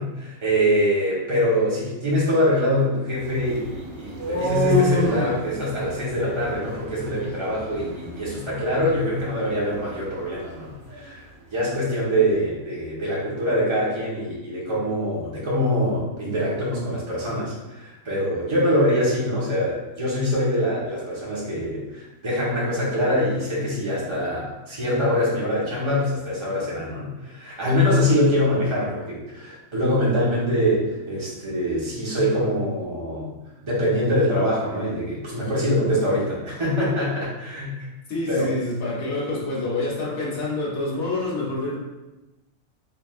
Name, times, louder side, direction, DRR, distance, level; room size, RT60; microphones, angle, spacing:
voice 1, 0.0-33.3 33.6-37.9 38.3-38.5, equal, 20° right, -7 dB, 1.1 m, -24 dB
sound 1, 3.2-11.1, equal, 70° right, 1.2 m, -30 dB
voice 2, 38.1-41.8, left 2 dB, 70° left, -6 dB, 1.4 m, -27 dB
3.9 x 3.4 x 2.4 m, 1.0 s
omnidirectional pair, 1.5 m